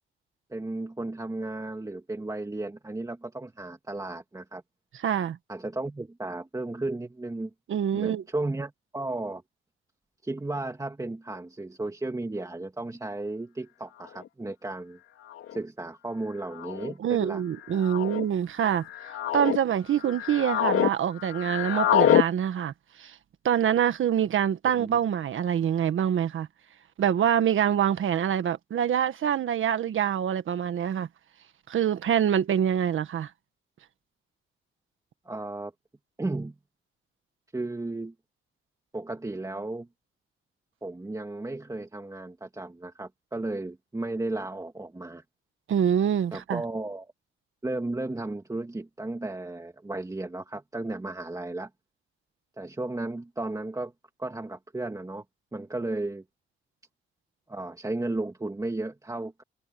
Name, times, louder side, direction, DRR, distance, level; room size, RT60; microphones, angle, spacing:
voice 1, 0.5-4.6 5.5-7.5 7.9-9.4 10.2-15.0 15.5-17.4 24.8-25.0 35.3-35.7 36.2-36.6 37.5-38.1 38.9-39.9 40.8-45.2 46.3-47.1 47.6-51.7 52.6-53.9 54.2-55.2 55.5-56.2 57.5-59.4, right 2 dB, 15° right, 2.3 m, -34 dB
voice 2, 5.0-5.4 7.7-8.2 17.0-18.9 19.3-22.7 23.0-23.1 23.4-26.5 27.0-31.1 31.7-33.3 45.7-46.6, right 9 dB, 70° right, 1.6 m, -25 dB
sound 1, 14.2-14.3 15.3-15.6 16.5-16.9 17.8-18.2 18.9-19.6 20.0-20.9 21.2-22.3, left 11 dB, 85° left, 2.5 m, -25 dB
cardioid pair, 100°, 21 cm